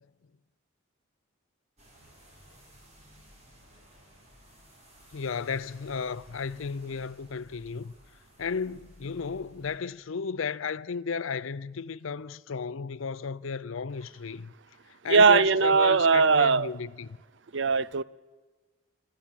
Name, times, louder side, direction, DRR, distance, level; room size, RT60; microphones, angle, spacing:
sound 1, 1.8-9.8, equal, 30° right, 5.3 m, -56 dB
voice 1, 5.1-7.9 8.4-14.5 14.9-17.2, left 5 dB, 75° left, 0.6 m, -34 dB
voice 2, 15.1-16.7 17.5-18.0, right 5 dB, 60° right, 0.6 m, -20 dB
27.5 x 13.0 x 7.4 m
head